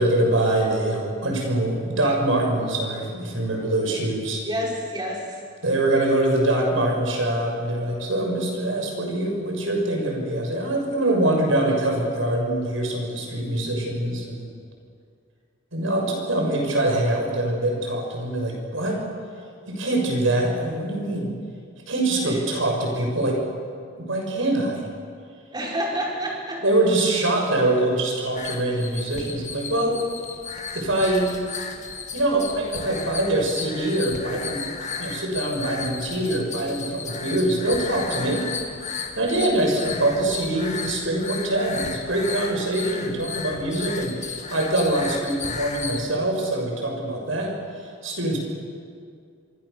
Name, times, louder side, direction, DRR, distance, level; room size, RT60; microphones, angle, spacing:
voice 1, 0.0-4.4 5.6-14.5 15.7-19.0 19.7-21.3 21.9-23.4 23.9-24.9 26.6-30.0 30.7-31.3 32.1-34.7 35.0-38.5 39.2-47.6 48.0-48.4, right 1 dB, 90° right, 1 dB, 6.4 m, -24 dB
voice 2, 4.4-5.4 15.8-16.1 22.2-22.4 25.5-26.6 28.7-28.8 39.3-39.7, equal, 20° right, -2 dB, 5.7 m, -30 dB
sound 1, 28.4-46.0, left 5 dB, 40° left, 2.1 m, -34 dB
25.0 x 25.0 x 6.8 m, 2.2 s
head